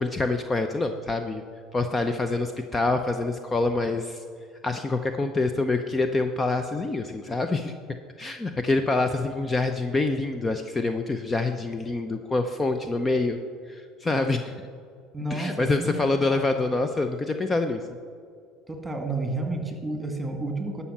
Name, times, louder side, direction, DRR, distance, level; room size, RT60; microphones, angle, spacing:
voice 1, 0.0-1.4 1.7-4.2 4.6-7.7 8.2-13.4 13.7-14.5 15.3-17.9, left 3 dB, 20° left, 7 dB, 0.7 m, -26 dB
voice 2, 15.1-16.6 18.7-20.8, right 2 dB, 15° right, 4 dB, 2.1 m, -31 dB
12.5 x 5.6 x 7.2 m, 2.3 s
supercardioid pair, 90°, 0 cm